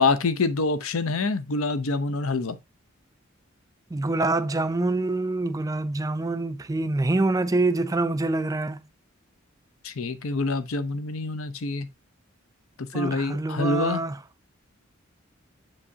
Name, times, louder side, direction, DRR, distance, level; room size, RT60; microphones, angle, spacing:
voice 1, 0.0-2.6 9.8-11.9 12.8-14.0, left 3 dB, 85° left, 0.7 m, -26 dB
voice 2, 3.9-8.8 12.9-14.2, right 2 dB, 15° right, 0.4 m, -25 dB
7.4 x 4.9 x 2.7 m
head